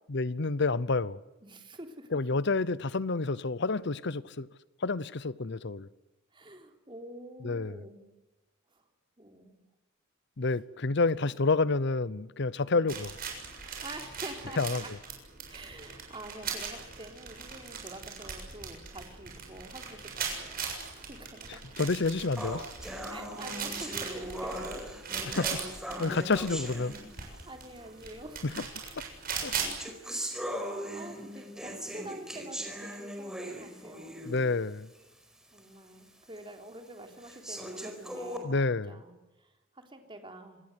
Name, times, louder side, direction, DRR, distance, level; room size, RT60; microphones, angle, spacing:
voice 1, 0.1-1.2 2.1-4.5 4.8-5.9 7.4-7.8 10.4-13.1 14.6-14.8 21.8-22.7 25.3-25.6 26.0-26.9 28.4-28.5 29.4-29.5 34.3-34.9 38.4-39.0, left 3 dB, 60° left, 0.8 m, -29 dB
voice 2, 1.4-2.1 6.3-8.1 8.7-8.8 9.2-9.6 11.2-11.3 12.7-13.0 13.8-14.9 15.5-20.5 20.9-21.6 23.1-24.8 26.0-26.3 27.3-28.5 29.4-29.5 30.1-30.6 30.9-34.3 35.5-38.5 38.9-40.6, right 1 dB, 25° right, 3.5 m, -47 dB
sound 1, 12.9-29.8, right 6 dB, 45° right, 7.2 m, -40 dB
sound 2, 22.4-27.5 28.4-28.5 29.3-34.5 34.9-35.0 35.6-35.7 36.4-36.5 37.2-38.4, equal, 5° right, 4.8 m, -39 dB
26.5 x 20.5 x 8.1 m
head